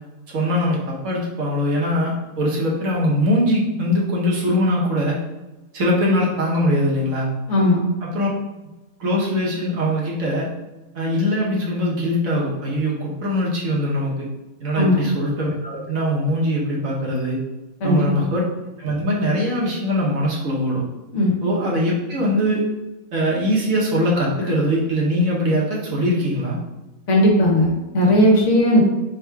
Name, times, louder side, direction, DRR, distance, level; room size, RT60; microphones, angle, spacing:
voice 1, 0.3-5.2 5.7-7.3 8.0-8.3 9.0-10.5 10.9-14.3 14.6-17.4 17.8-18.5 18.8-20.8 21.4-22.6 23.1-26.6, equal, 70° right, -4 dB, 1.3 m, -21 dB
voice 2, 7.5-7.8 14.8-15.0 17.8-18.3 21.1-21.3 27.1-27.7 27.9-28.8, left 1 dB, 60° left, -2 dB, 1.2 m, -16 dB
3.6 x 2.3 x 4.5 m, 1.1 s
omnidirectional pair, 1.5 m